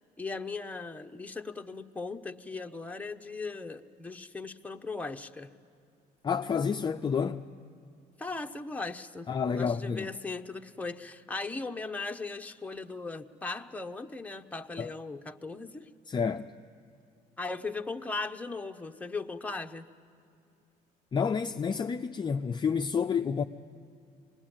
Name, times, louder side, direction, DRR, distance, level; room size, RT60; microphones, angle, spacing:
voice 1, 0.2-5.5 8.2-15.9 17.4-19.9, left 3 dB, 10° left, 0.9 m, -38 dB
voice 2, 6.2-7.4 9.3-10.1 14.8-14.9 16.1-16.5 21.1-23.4, left 6 dB, 25° left, 0.5 m, -29 dB
25.0 x 20.5 x 8.9 m
cardioid pair, 110°, 17 cm